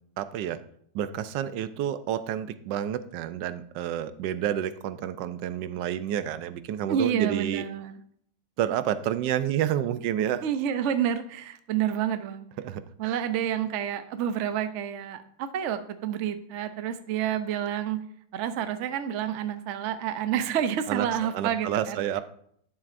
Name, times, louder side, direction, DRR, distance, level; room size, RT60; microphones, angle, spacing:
voice 1, 0.2-0.6 0.9-7.6 8.6-10.4 12.6-13.2 20.9-21.1 21.3-22.2, right 10 dB, 85° right, 12 dB, 1.3 m, -29 dB
voice 2, 6.9-7.9 10.4-12.5 13.0-18.0 18.3-22.2, right 9 dB, 60° right, 10 dB, 0.8 m, -29 dB
11.5 x 7.3 x 2.5 m, 0.66 s
omnidirectional pair, 1.9 m